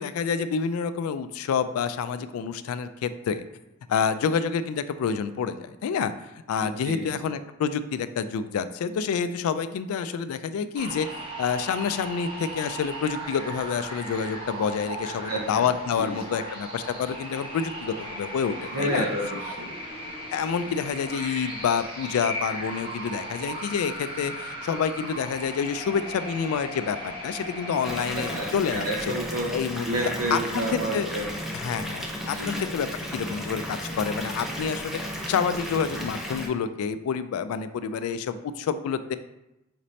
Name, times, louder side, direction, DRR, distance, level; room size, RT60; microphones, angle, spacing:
voice 1, 0.0-3.5 3.9-6.1 6.5-11.1 11.4-19.1 20.3-29.1 29.5-29.8 30.3-31.1 31.5-39.2, left 6 dB, 85° left, 13 dB, 0.3 m, -28 dB
voice 2, 6.6-7.1 15.0-15.6 15.9-16.1 18.7-19.7 28.1-29.5 29.8-31.3 32.3-32.6, right 1 dB, 80° right, -1 dB, 0.7 m, -30 dB
sound 1, 10.8-28.6, right 1 dB, 25° right, 0.8 m, -37 dB
Water tap faucet / Bathtub (filling or washing) / Fill (with liquid), 27.8-36.5, equal, ahead, 0.4 m, -34 dB
5.0 x 2.7 x 3.1 m, 0.91 s
head